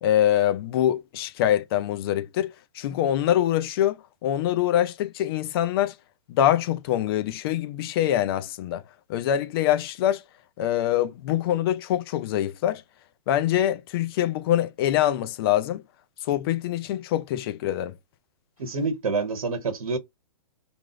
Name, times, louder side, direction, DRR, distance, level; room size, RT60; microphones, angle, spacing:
voice 1, 0.0-6.0 6.3-8.8 9.1-10.2 10.6-12.8 13.3-15.8 16.3-18.0, left 11 dB, 40° left, 0.5 m, -24 dB
voice 2, 18.6-20.0, right 4 dB, 80° right, 1.0 m, -27 dB
3.0 x 2.6 x 3.7 m
hypercardioid pair, 130°, 18 cm